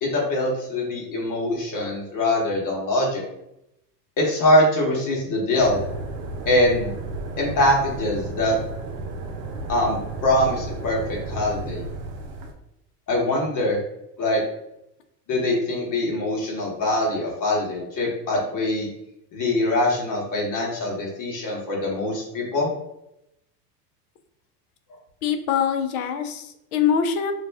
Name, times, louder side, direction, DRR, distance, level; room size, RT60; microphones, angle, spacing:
voice 1, 0.0-3.2 4.2-5.8 6.4-6.9 7.4-8.5 9.7-11.8 13.1-13.8 14.2-14.4 15.3-18.9 19.3-22.7, left 1 dB, 40° left, -2 dB, 1.0 m, -23 dB
sound 1, 5.6-12.5, right 2 dB, 80° right, 0.7 m, -33 dB
voice 2, 25.2-27.3, left 7 dB, 65° left, 7 dB, 0.6 m, -23 dB
2.4 x 2.1 x 3.3 m, 0.83 s
hypercardioid pair, 95°, 48 cm